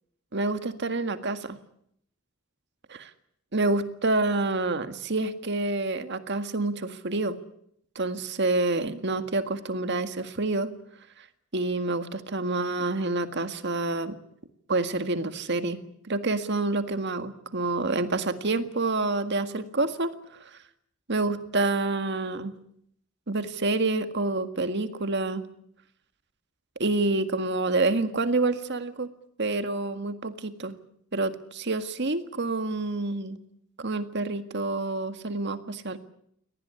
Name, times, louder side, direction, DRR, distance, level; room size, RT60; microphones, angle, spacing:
voice 1, 0.3-1.6 2.9-3.1 3.5-7.4 8.0-10.7 11.2-11.3 11.5-14.2 14.7-15.8 16.1-20.1 20.4-20.6 21.1-22.5 23.3-25.4 26.8-29.1 29.4-30.8 31.1-33.4 33.8-36.0, right 2 dB, 55° right, 10 dB, 1.8 m, -28 dB
23.0 x 19.0 x 9.9 m, 0.72 s
head